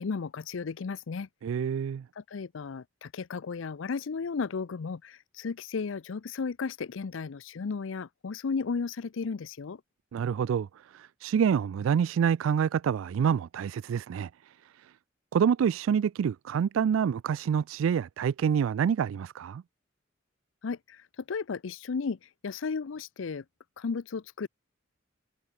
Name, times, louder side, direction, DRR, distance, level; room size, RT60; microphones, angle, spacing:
voice 1, 0.0-1.3 2.2-9.8 20.6-23.4 23.8-24.5, left 5 dB, 75° left, 0.5 m, -34 dB
voice 2, 1.4-2.0 10.1-10.7 10.9-14.3 15.3-19.6, right 7 dB, 85° right, 0.3 m, -27 dB
head